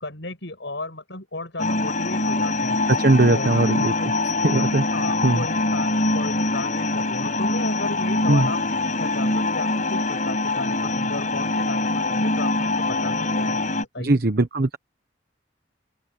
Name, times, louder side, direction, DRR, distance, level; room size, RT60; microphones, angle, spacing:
voice 1, 0.0-2.8 3.2-4.1 4.9-8.6 8.9-13.6 13.9-14.2, left 2 dB, 80° left, 7.0 m, -34 dB
sound 1, 1.6-13.8, left 2 dB, 45° left, 7.6 m, -24 dB
voice 2, 3.0-3.9 4.4-4.9 5.2-5.4 8.3-8.5 14.0-14.8, right 2 dB, 55° right, 1.1 m, -19 dB
open air
head